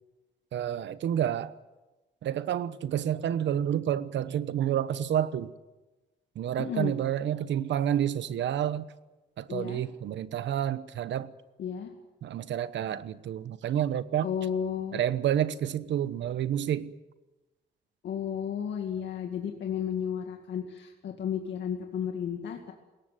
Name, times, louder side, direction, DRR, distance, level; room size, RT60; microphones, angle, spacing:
voice 1, 0.5-1.5 2.2-5.5 6.3-8.8 9.4-11.3 12.2-14.3 14.9-16.9, right 10 dB, 85° right, 1.1 m, -29 dB
voice 2, 6.6-6.9 9.5-9.8 11.6-11.9 14.2-15.0 18.0-22.7, left 8 dB, 85° left, 2.2 m, -33 dB
21.5 x 18.0 x 9.5 m
cardioid pair, 110°, 18 cm